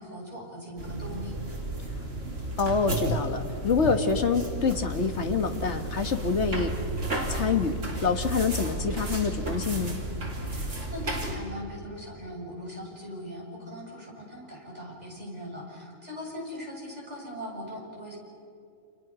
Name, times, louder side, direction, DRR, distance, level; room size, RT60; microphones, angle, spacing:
voice 1, 0.0-1.4 10.3-18.2, equal, 25° right, -3 dB, 7.3 m, -40 dB
sound 1, 0.8-11.4, right 1 dB, 55° right, 3.8 m, -33 dB
voice 2, 2.6-6.7 7.3-7.8 8.0-10.0, left 5 dB, 50° left, 7 dB, 1.9 m, -26 dB
29.5 x 29.0 x 6.2 m, 2.6 s
omnidirectional pair, 1.5 m